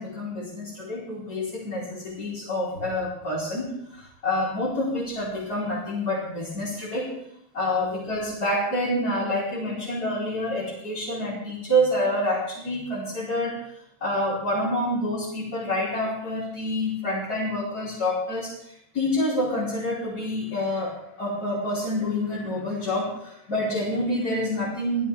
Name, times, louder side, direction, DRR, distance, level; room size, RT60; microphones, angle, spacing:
voice 1, 0.0-7.2 7.5-13.7 14.0-25.1, left 1 dB, 45° left, -8 dB, 5.2 m, -27 dB
21.5 x 16.0 x 3.7 m, 0.77 s
omnidirectional pair, 2.4 m